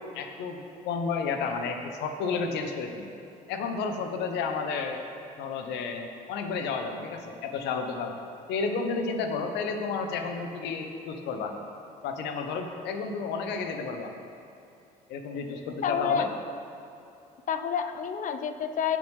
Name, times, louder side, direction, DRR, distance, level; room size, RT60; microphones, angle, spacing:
voice 1, 0.1-3.1 3.5-5.0 5.4-8.1 8.5-11.5 12.0-14.1 15.1-16.3, left 4 dB, 60° left, 5 dB, 1.0 m, -31 dB
voice 2, 15.8-16.3 17.5-19.0, left 7 dB, 40° left, 9 dB, 0.7 m, -28 dB
16.5 x 7.4 x 3.4 m, 2.7 s
figure-of-eight pair, 50°, 20 cm